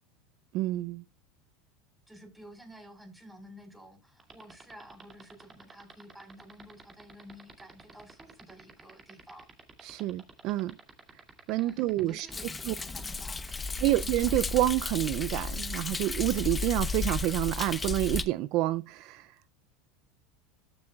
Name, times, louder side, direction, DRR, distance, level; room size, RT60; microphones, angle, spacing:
voice 1, 0.5-1.0 9.8-10.8 11.5-12.3 12.7-12.8 13.8-19.3, right 16 dB, 55° right, 0.4 m, -28 dB
voice 2, 2.1-9.5 11.6-13.4, equal, 5° right, 4.4 m, -51 dB
sound 1, 4.2-14.5, right 5 dB, 25° right, 2.3 m, -50 dB
Thunder, 12.3-18.2, left 4 dB, 15° left, 0.8 m, -34 dB
14.5 x 7.0 x 2.3 m
supercardioid pair, 125°, 0 cm